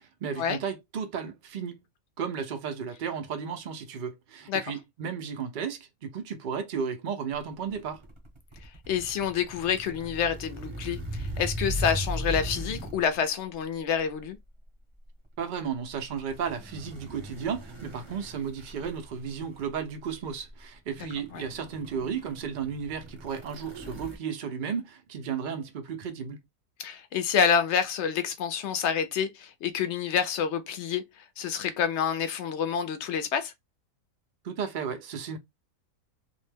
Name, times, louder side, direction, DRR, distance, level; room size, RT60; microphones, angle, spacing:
voice 1, 0.0-1.8 2.2-8.0 15.4-26.4 34.4-35.4, right 7 dB, 80° right, 0.4 m, -34 dB
sound 1, 7.5-13.2 14.0-14.2 16.1-19.9 20.5-20.6 20.9-24.2, equal, 30° right, 0.6 m, -38 dB
voice 2, 8.9-14.4 21.3-21.5 26.8-33.5, left 7 dB, 65° left, 0.7 m, -28 dB
2.6 x 2.1 x 3.3 m
omnidirectional pair, 1.6 m